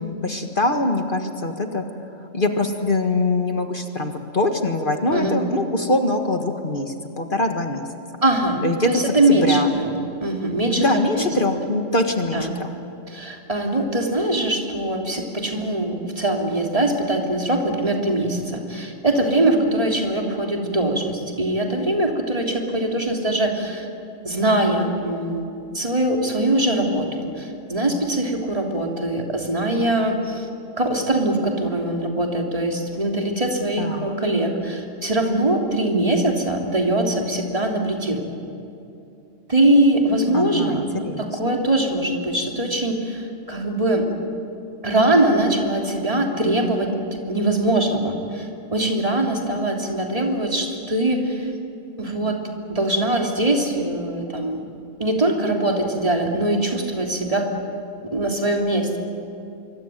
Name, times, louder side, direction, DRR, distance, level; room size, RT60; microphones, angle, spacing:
voice 1, 0.0-1.8 2.3-7.8 8.6-9.7 10.8-12.7 33.8-34.2 40.3-41.6, left 2 dB, 40° left, 5 dB, 1.8 m, -23 dB
voice 2, 8.2-9.9 10.2-11.3 12.3-12.5 13.1-23.9 24.2-25.5 25.7-30.5 30.8-38.2 39.5-40.9 41.2-44.1 44.8-46.9 47.3-51.5 52.0-52.4 52.7-54.6 55.0-57.5 58.1-59.0, right 1 dB, 25° right, 1 dB, 3.3 m, -22 dB
26.0 x 24.5 x 9.3 m, 2.7 s
omnidirectional pair, 1.4 m